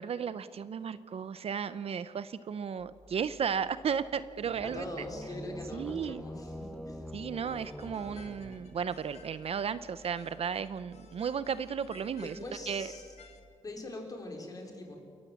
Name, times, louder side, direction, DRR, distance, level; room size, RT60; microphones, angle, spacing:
voice 1, 0.0-4.8 5.7-6.2 7.1-12.3 12.7-12.9, right 7 dB, 55° right, 14 dB, 0.6 m, -34 dB
sound 1, 2.8-13.4, left 1 dB, 80° right, 6.4 m, -58 dB
sound 2, 4.4-9.1, equal, 5° left, 1.0 m, -45 dB
voice 2, 4.6-7.1 12.2-13.1 13.6-15.0, left 1 dB, 30° left, 1 dB, 4.1 m, -42 dB
sound 3, 7.4-13.4, left 5 dB, 60° left, 2.3 m, -58 dB
29.0 x 15.0 x 7.3 m, 2.3 s
wide cardioid pair, 145°, 12 cm